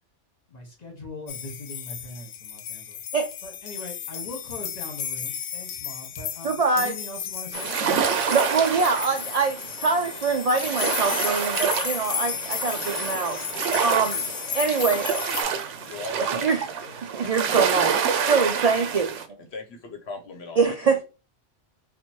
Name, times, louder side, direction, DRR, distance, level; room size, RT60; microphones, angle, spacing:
voice 1, 0.5-3.0 3.4-8.1, left 2 dB, 35° left, 1.3 m, -41 dB
sound 1, 1.3-15.4, left 8 dB, 85° left, 0.9 m, -33 dB
voice 2, 6.4-6.9 8.3-13.4 13.8-14.2 14.5-15.1 16.4-16.7 17.0-19.1 20.6-21.0, right 4 dB, 65° right, 0.4 m, -24 dB
sound 2, 7.5-19.3, right 6 dB, 80° right, 0.9 m, -28 dB
voice 3, 15.8-16.5 16.8-17.8 19.4-21.0, left 3 dB, 65° left, 1.0 m, -40 dB
3.0 x 2.5 x 4.3 m
omnidirectional pair, 1.2 m